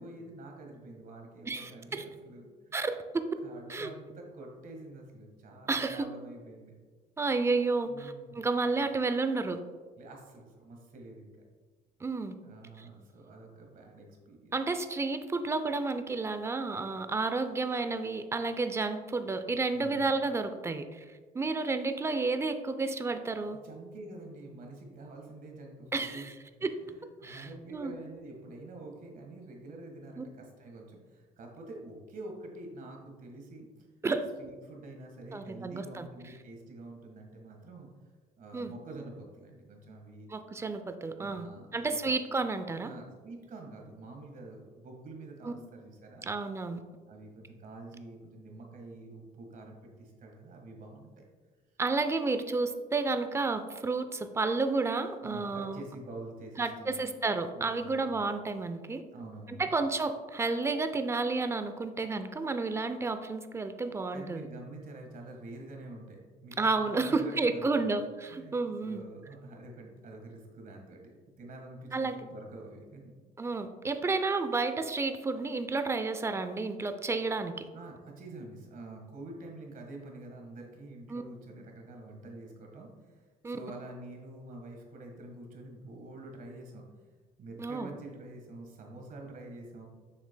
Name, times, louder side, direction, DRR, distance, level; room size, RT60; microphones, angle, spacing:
voice 1, 0.0-2.8 3.4-6.7 7.9-8.5 10.0-11.4 12.4-14.5 19.7-20.1 23.6-26.3 26.8-33.7 34.4-37.9 38.4-40.3 41.2-42.1 42.8-46.3 47.1-51.2 55.2-57.1 57.5-58.1 59.1-59.7 64.1-68.0 68.3-68.6 68.8-71.1 71.4-73.1 77.7-83.1 83.5-86.8 87.4-89.9, right 2 dB, 55° right, 1 dB, 1.5 m, -47 dB
voice 2, 1.5-2.0 2.7-2.9 3.7-3.9 5.7-6.1 7.2-9.6 12.0-12.3 14.5-21.0 21.3-23.6 25.9-26.3 26.6-26.7 27.2-27.9 30.2-30.3 34.0-34.3 35.3-36.1 38.5-38.7 40.3-41.5 41.7-42.9 45.4-45.5 46.2-46.8 51.8-55.8 56.6-59.0 59.6-64.5 66.6-69.0 71.9-72.2 73.4-77.5 81.1-81.2 83.4-83.6 87.6-87.9, right 3 dB, 15° right, 9 dB, 0.5 m, -31 dB
7.3 x 6.0 x 2.2 m, 1.4 s
cardioid pair, 110°, 17 cm